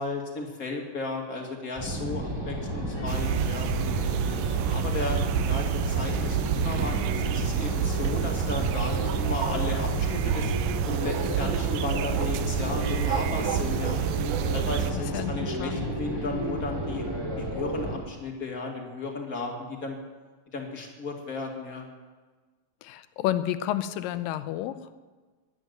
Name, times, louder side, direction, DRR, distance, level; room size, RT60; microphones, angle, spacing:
voice 1, 0.0-3.7 4.7-10.5 10.9-14.0 14.5-17.0 17.4-20.0 20.5-21.8, left 3 dB, 30° left, 1 dB, 2.1 m, -34 dB
sound 1, 1.8-18.0, equal, 10° right, 2.5 m, -32 dB
sound 2, 2.5-10.4, equal, 5° left, 1.2 m, -44 dB
sound 3, 3.1-14.9, right 10 dB, 80° right, 1.9 m, -28 dB
voice 2, 14.9-15.3 15.6-15.9 22.8-24.8, left 12 dB, 85° left, 12 dB, 2.4 m, -30 dB
12.0 x 11.0 x 9.3 m, 1.3 s
omnidirectional pair, 3.9 m